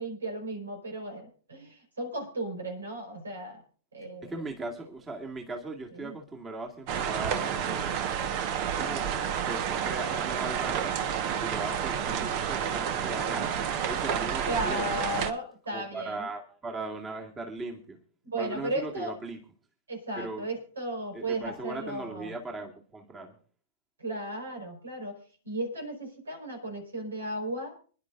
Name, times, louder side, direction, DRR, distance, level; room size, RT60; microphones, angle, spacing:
voice 1, 0.0-3.6 3.9-4.4 6.0-6.2 12.1-12.2 14.5-16.3 18.2-19.1 19.9-22.3 24.0-25.2 25.4-27.8, right 1 dB, 85° right, 4 dB, 4.4 m, -35 dB
voice 2, 4.2-8.0 8.3-9.1 9.4-14.8 15.7-18.0 18.4-19.4 20.2-20.5 21.1-23.4, right 2 dB, 20° right, 1 dB, 2.1 m, -39 dB
sound 1, 6.9-15.3, right 8 dB, 45° right, 1.2 m, -30 dB
26.0 x 11.0 x 2.5 m, 0.40 s
hypercardioid pair, 110°, 0 cm